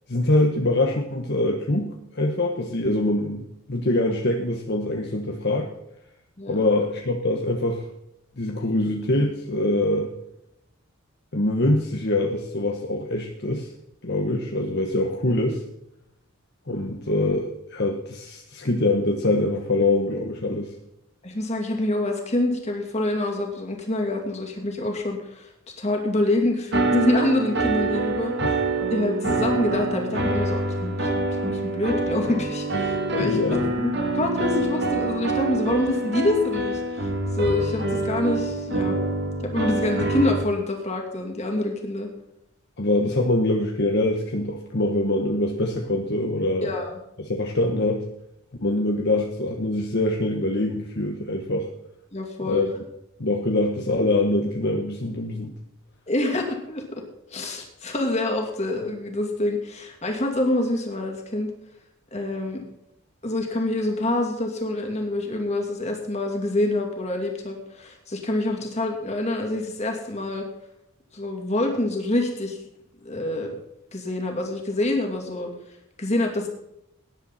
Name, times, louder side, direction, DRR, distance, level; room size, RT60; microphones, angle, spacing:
voice 1, 0.1-5.7 6.5-7.8 8.4-10.1 11.3-13.7 14.0-15.6 16.7-20.7 28.4-28.6 33.2-33.7 42.8-46.7 47.2-48.0 48.6-51.7 52.4-52.7 53.2-55.5, left 1 dB, 50° left, 2 dB, 1.2 m, -24 dB
voice 2, 21.2-25.5 25.8-28.6 28.9-33.4 33.8-39.0 39.4-42.1 46.6-46.9 52.1-52.7 56.1-57.0 57.3-61.5 62.1-62.6 63.2-70.5 71.1-72.6 73.0-73.5 73.9-75.5 76.0-76.5, left 1 dB, 30° left, 2 dB, 2.6 m, -26 dB
sound 1, 26.7-40.4, right 2 dB, 50° right, 1.7 m, -25 dB
17.5 x 10.5 x 4.2 m, 0.82 s
head